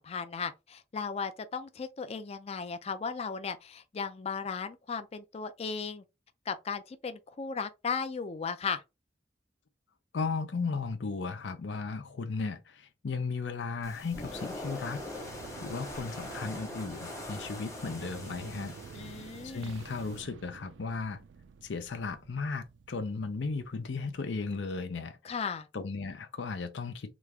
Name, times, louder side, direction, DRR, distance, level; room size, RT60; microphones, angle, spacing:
voice 1, 0.0-6.0 6.5-8.8 18.9-19.7 25.2-25.7, left 5 dB, 35° left, 0.4 m, -36 dB
voice 2, 10.1-15.4 15.6-18.8 19.4-21.2 21.6-27.1, left 4 dB, 85° left, 0.5 m, -36 dB
sound 1, 13.8-20.2, left 1 dB, 15° left, 0.9 m, -43 dB
sound 2, 15.1-24.7, right 6 dB, 80° right, 0.3 m, -50 dB
3.0 x 2.4 x 3.4 m
head